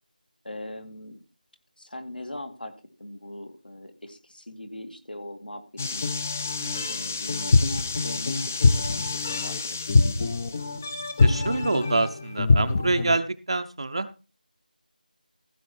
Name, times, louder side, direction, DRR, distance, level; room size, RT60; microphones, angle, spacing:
voice 1, 0.4-1.2 1.8-2.7 3.0-6.1 6.9-7.6 8.0-10.1, left 1 dB, 80° left, 7 dB, 2.5 m, -40 dB
sound 1, 5.8-13.2, left 3 dB, 15° left, 0.5 m, -24 dB
voice 2, 6.6-7.0 11.2-14.1, right 2 dB, 40° right, 9 dB, 0.6 m, -27 dB
15.5 x 6.9 x 4.6 m, 0.33 s
figure-of-eight pair, 170°, 5 cm